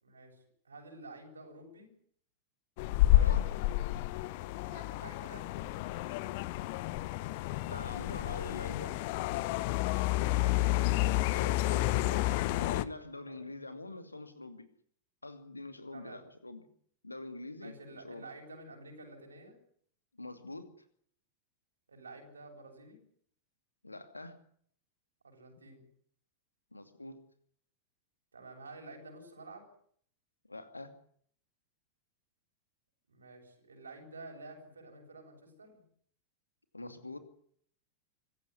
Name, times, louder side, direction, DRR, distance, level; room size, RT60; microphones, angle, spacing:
voice 1, 0.0-1.9 4.6-6.3 10.2-11.3 13.3-13.5 15.9-16.2 17.6-19.6 21.9-23.0 25.2-25.9 28.3-29.7 33.1-35.8, right 2 dB, 75° right, 2 dB, 8.0 m, -51 dB
sound 1, 2.8-12.8, left 16 dB, 50° left, 1.0 m, -30 dB
voice 2, 3.1-3.5 7.7-9.0 11.3-12.3 12.6-14.7 15.2-16.6 17.0-18.3 20.1-20.7 23.8-24.4 26.7-27.2 30.4-30.9 36.7-37.2, left 2 dB, 80° left, 9 dB, 2.5 m, -45 dB
25.0 x 15.5 x 9.8 m, 0.63 s
figure-of-eight pair, 90°, 0 cm